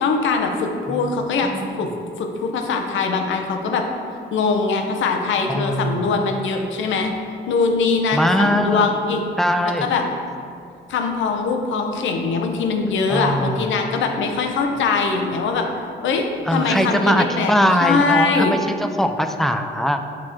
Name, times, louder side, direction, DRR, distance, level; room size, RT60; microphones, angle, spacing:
voice 1, 0.0-1.5 1.8-1.9 2.2-3.9 4.3-7.1 7.5-9.2 9.8-10.0 10.9-15.7 16.0-17.5 17.8-18.5, left 4 dB, 75° left, 4 dB, 0.7 m, -22 dB
voice 2, 0.9-1.8 5.5-6.2 8.1-8.8 9.4-9.9 13.1-13.7 16.5-20.0, equal, ahead, 6 dB, 0.3 m, -21 dB
7.6 x 3.1 x 4.3 m, 2.4 s
cardioid pair, 90°, 20 cm